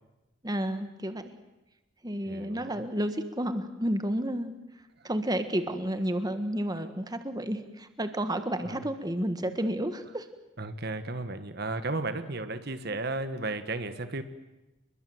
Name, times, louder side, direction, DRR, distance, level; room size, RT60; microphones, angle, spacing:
voice 1, 0.4-1.3 2.0-4.5 5.0-10.3, right 1 dB, 20° right, 9 dB, 1.5 m, -31 dB
voice 2, 2.3-2.9 5.0-5.1 8.6-8.8 10.6-14.2, right 2 dB, 55° right, 11 dB, 1.5 m, -34 dB
30.0 x 21.5 x 7.9 m, 1.0 s
head